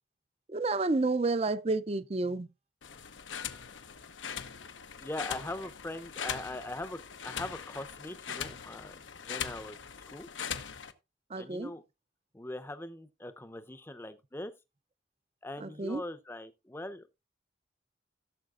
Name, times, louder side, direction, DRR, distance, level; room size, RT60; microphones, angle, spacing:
voice 1, 0.5-2.5 11.3-11.7 15.6-16.0, right 3 dB, 30° right, 0.5 m, -30 dB
sound 1, 2.8-10.9, left 7 dB, 90° left, 0.9 m, -41 dB
voice 2, 5.0-9.8 10.1-10.3 11.3-11.8 12.3-14.5 15.4-17.1, left 1 dB, 10° left, 0.6 m, -41 dB
16.5 x 7.3 x 2.5 m
head